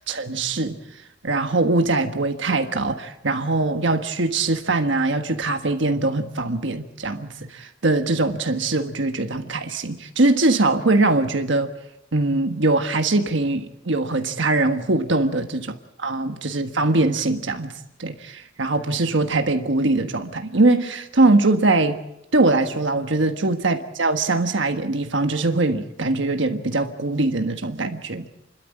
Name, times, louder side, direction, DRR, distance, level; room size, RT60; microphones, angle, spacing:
voice 1, 0.1-0.8 1.2-11.7 12.1-15.6 16.0-22.0 22.3-28.3, right 2 dB, 65° right, 1.5 m, -22 dB
29.5 x 13.0 x 8.6 m
head